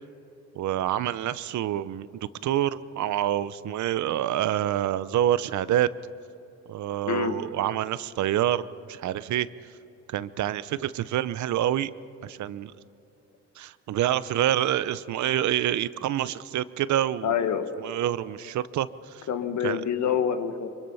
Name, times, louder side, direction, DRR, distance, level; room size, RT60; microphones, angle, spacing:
voice 1, 0.5-2.1 2.4-5.9 6.7-9.5 10.1-11.9 12.2-12.7 13.6-17.3 17.8-19.3 19.6-19.8, right 12 dB, 70° right, 16 dB, 0.8 m, -27 dB
voice 2, 17.2-17.7 19.3-20.7, left 8 dB, 70° left, 8 dB, 1.7 m, -26 dB
24.5 x 23.0 x 5.7 m, 2.9 s
cardioid pair, 90°, 30 cm